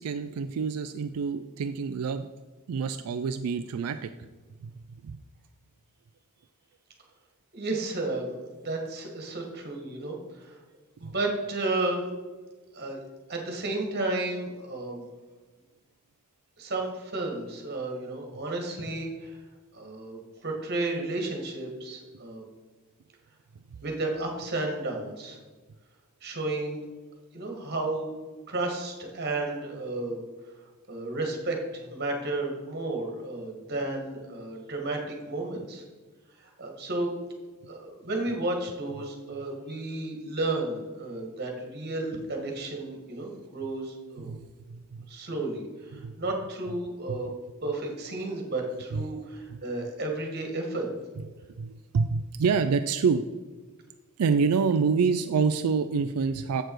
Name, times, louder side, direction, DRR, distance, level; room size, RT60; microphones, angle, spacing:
voice 1, 0.0-2.3 2.7-4.1 4.6-4.7 5.0-5.2 11.0-11.1 39.0-39.1 44.2-45.1 45.9-46.1 47.1-47.2 48.9-49.1 49.5-49.6 51.5-53.2 54.2-56.6, right 5 dB, 85° right, 9 dB, 0.4 m, -27 dB
voice 2, 7.5-10.5 11.0-12.1 12.7-13.0 13.3-15.1 16.6-19.4 19.7-22.5 23.8-25.4 26.2-26.8 27.3-28.1 28.5-30.2 30.9-35.8 36.4-37.1 37.7-44.3 45.1-47.3 47.6-50.9, right 2 dB, 50° right, 2 dB, 1.8 m, -32 dB
7.7 x 6.7 x 4.7 m, 1.3 s
head